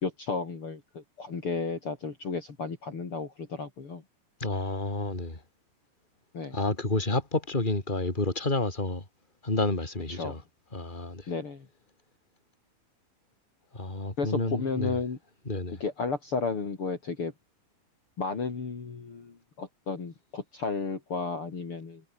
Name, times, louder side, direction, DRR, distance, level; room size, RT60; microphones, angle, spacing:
voice 1, 0.0-4.0 6.3-6.6 10.1-10.4 11.3-11.7 14.2-15.2 15.8-17.3 18.2-22.0, left 4 dB, 45° left, 4.0 m, -33 dB
voice 2, 4.4-5.4 6.5-9.0 9.4-10.4 10.7-11.3 13.7-15.0 15.4-15.8, left 2 dB, 15° left, 4.7 m, -30 dB
omnidirectional pair, 3.6 m